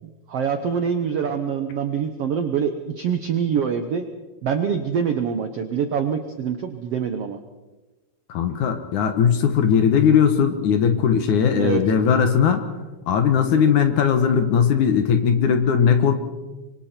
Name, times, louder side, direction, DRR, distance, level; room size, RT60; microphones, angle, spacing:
voice 1, 0.0-4.0 4.4-7.4 11.5-11.8, right 7 dB, 80° right, 7 dB, 1.3 m, -25 dB
voice 2, 8.3-12.7 13.1-16.1, left 7 dB, 65° left, 7 dB, 2.4 m, -19 dB
25.0 x 24.5 x 4.4 m, 1.2 s
omnidirectional pair, 4.3 m